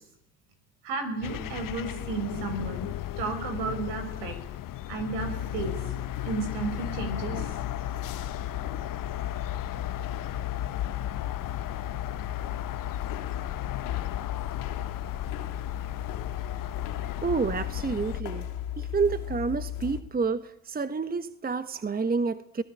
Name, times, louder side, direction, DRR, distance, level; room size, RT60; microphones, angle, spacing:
voice 1, 0.8-2.9 3.2-4.4 4.9-5.8 6.2-7.5, right 4 dB, 75° right, 8 dB, 6.2 m, -33 dB
sound 1, 1.2-18.2, left 13 dB, 50° left, 1.1 m, -36 dB
sound 2, 5.2-20.0, left 10 dB, 80° left, 3.2 m, -36 dB
voice 2, 17.2-18.5 18.8-22.6, right 5 dB, 20° right, 12 dB, 1.3 m, -29 dB
27.5 x 19.0 x 9.0 m, 0.81 s
hypercardioid pair, 70°, 42 cm